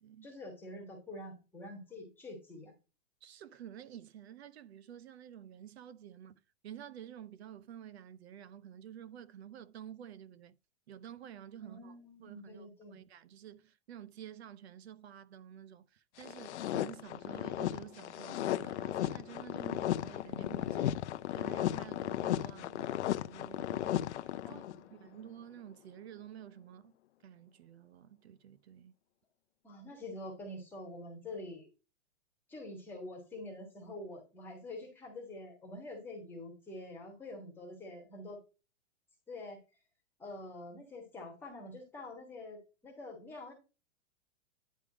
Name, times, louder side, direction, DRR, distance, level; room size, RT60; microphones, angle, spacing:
voice 1, 0.2-2.7 11.6-13.0 24.4-25.1 29.6-31.7 32.5-38.4 39.3-39.6 40.2-43.5, left 1 dB, 5° left, 1.3 m, -46 dB
voice 2, 3.2-10.6 10.9-11.9 12.2-21.0 21.3-24.6 24.9-26.9 27.2-29.0, right 10 dB, 65° right, 0.6 m, -50 dB
sound 1, 16.2-24.8, left 12 dB, 75° left, 0.6 m, -35 dB
10.0 x 3.4 x 4.8 m
supercardioid pair, 180°, 34 cm